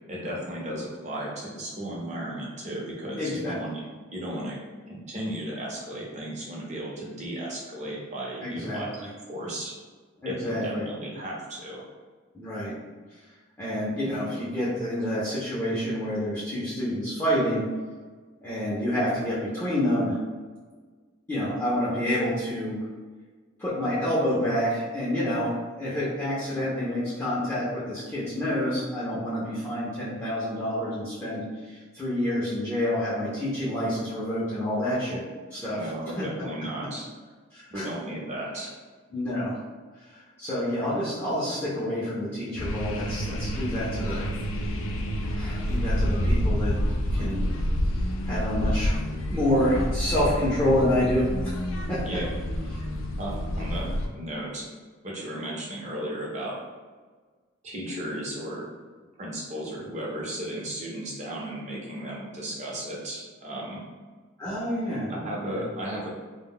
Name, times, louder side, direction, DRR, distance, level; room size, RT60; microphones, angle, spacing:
voice 1, 0.1-3.7 4.1-4.6 4.9-8.9 9.3-9.7 10.3-11.8 35.7-37.0 37.7-38.7 52.0-52.3 53.2-54.7 55.0-56.6 57.6-58.7 59.2-63.8 65.1-66.1, right 1 dB, 35° right, -4 dB, 0.6 m, -35 dB
voice 2, 3.2-3.6 8.4-9.1 10.2-10.8 12.3-12.8 13.6-17.7 18.4-20.2 21.3-22.8 23.6-35.2 35.5-35.9 36.2-36.3 37.5-37.9 39.1-39.6 40.4-44.2 45.3-46.7 47.1-47.4 48.3-49.0 49.3-51.6 51.9-52.2 64.4-65.1 65.4-65.6, left 1 dB, 10° left, -10 dB, 0.5 m, -28 dB
sound 1, 42.6-54.1, equal, 85° left, 0.4 m, -28 dB
2.1 x 2.1 x 3.6 m, 1.4 s
head